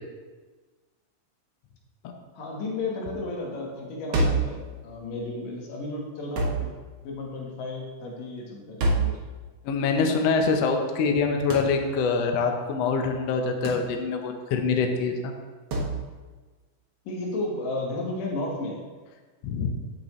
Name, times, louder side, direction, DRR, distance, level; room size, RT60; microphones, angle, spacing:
voice 1, 2.4-6.7 7.0-9.2 17.1-18.8, left 2 dB, 85° left, -1 dB, 3.1 m, -33 dB
sound 1, 4.1-4.6 6.4-6.7 8.8-9.2 11.5-11.8 13.6-13.9 15.7-16.0, right 2 dB, 60° right, 1.9 m, -25 dB
voice 2, 9.6-15.3 19.4-19.7, left 4 dB, 70° left, 3 dB, 1.7 m, -25 dB
14.5 x 5.4 x 3.1 m, 1.3 s
omnidirectional pair, 3.7 m